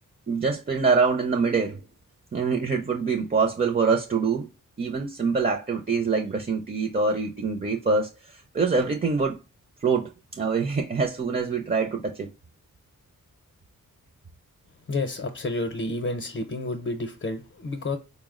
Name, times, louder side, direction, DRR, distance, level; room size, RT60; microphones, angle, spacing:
voice 1, 0.3-1.8 2.3-4.5 4.8-9.4 9.8-12.3, right 4 dB, 30° right, 0.5 m, -25 dB
voice 2, 14.9-18.0, left 2 dB, 40° left, 0.7 m, -30 dB
4.4 x 2.1 x 3.5 m
wide cardioid pair, 95°, 33 cm